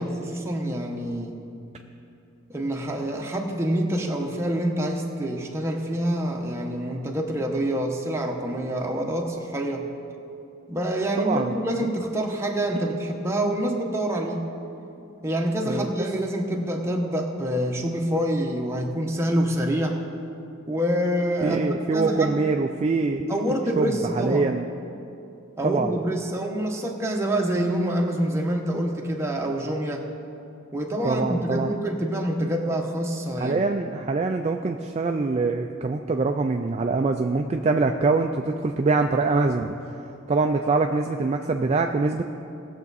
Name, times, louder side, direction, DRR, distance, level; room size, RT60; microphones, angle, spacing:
voice 1, 0.0-1.4 2.5-9.9 10.7-14.5 15.2-20.0 20.7-21.6 21.9-22.3 23.3-24.5 25.6-30.0 30.7-33.6, right 1 dB, 15° right, 0 dB, 1.0 m, -26 dB
voice 2, 11.2-11.5 15.6-15.9 21.4-23.2 23.8-24.7 25.6-25.9 31.0-31.7 33.4-39.7 40.3-42.2, right 3 dB, 30° right, 4 dB, 0.3 m, -24 dB
19.0 x 7.1 x 4.1 m, 2.7 s
head